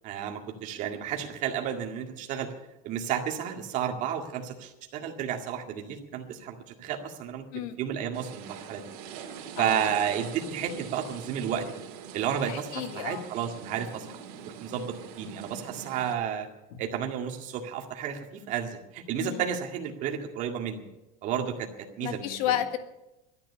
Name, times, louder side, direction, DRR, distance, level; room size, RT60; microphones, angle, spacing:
voice 1, 0.0-2.5 2.8-8.8 9.6-11.7 12.1-14.1 14.6-16.5 16.8-20.8 21.2-22.6, right 8 dB, 40° right, 3 dB, 2.0 m, -32 dB
sound 1, 8.1-16.1, right 7 dB, 80° right, 2.9 m, -43 dB
voice 2, 12.5-13.3 16.7-16.8 19.2-19.4 22.0-22.8, left 11 dB, 75° left, 8 dB, 1.7 m, -32 dB
13.5 x 9.9 x 9.8 m, 0.96 s
cardioid pair, 170°, 19 cm